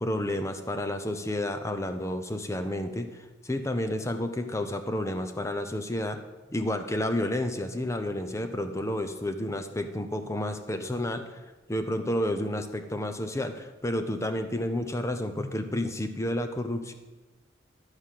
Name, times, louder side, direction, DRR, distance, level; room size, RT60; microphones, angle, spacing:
voice 1, 0.0-6.2 6.5-11.4 11.7-16.9, left 1 dB, 15° left, 8 dB, 0.7 m, -30 dB
12.5 x 4.9 x 7.5 m, 1.2 s
head